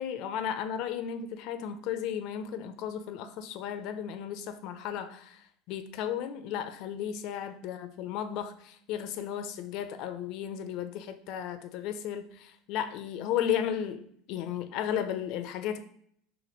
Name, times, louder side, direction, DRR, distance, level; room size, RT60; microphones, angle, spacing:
voice 1, 0.0-5.4 5.7-15.8, left 9 dB, 65° left, 0.4 m, -34 dB
3.3 x 2.1 x 4.3 m
hypercardioid pair, 90°, 0 cm